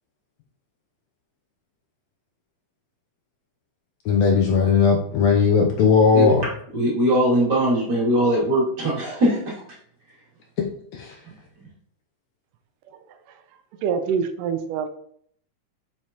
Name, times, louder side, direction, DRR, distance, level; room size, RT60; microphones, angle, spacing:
voice 1, 4.0-6.5 10.6-10.7 10.9-11.2, left 5 dB, 70° left, 1 dB, 1.7 m, -18 dB
voice 2, 6.7-9.6, right 1 dB, 35° right, -6 dB, 3.0 m, -20 dB
voice 3, 13.8-14.9, right 6 dB, 90° right, 8 dB, 2.3 m, -25 dB
7.4 x 6.8 x 3.0 m, 0.63 s
omnidirectional pair, 3.7 m